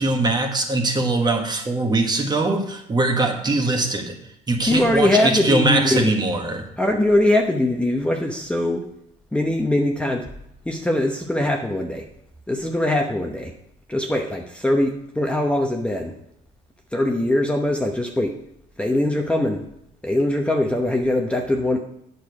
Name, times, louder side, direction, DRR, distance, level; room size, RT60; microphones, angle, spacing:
voice 1, 0.0-4.2 4.5-6.7, right 2 dB, 25° right, 4 dB, 1.3 m, -21 dB
voice 2, 4.7-6.2 6.8-8.8 9.3-10.3 10.7-12.1 12.5-13.5 13.9-16.2 16.9-18.4 18.8-19.6 20.0-21.8, left 1 dB, 5° left, 1 dB, 0.8 m, -21 dB
8.6 x 6.8 x 4.7 m, 0.78 s
cardioid pair, 110°, 17 cm